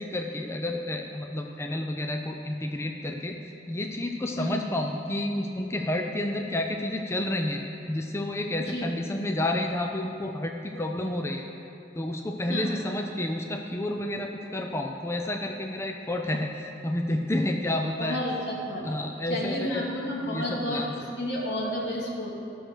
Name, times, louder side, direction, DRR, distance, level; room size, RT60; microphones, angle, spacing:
voice 1, 0.0-7.6 7.9-11.4 12.0-18.2 18.8-19.9 20.2-20.9, left 1 dB, 15° left, 3 dB, 0.4 m, -30 dB
voice 2, 8.6-8.9 12.5-12.7 18.0-18.8 19.3-20.8 21.2-22.3, left 1 dB, 75° left, -4 dB, 2.4 m, -31 dB
12.5 x 6.3 x 6.4 m, 2.8 s
head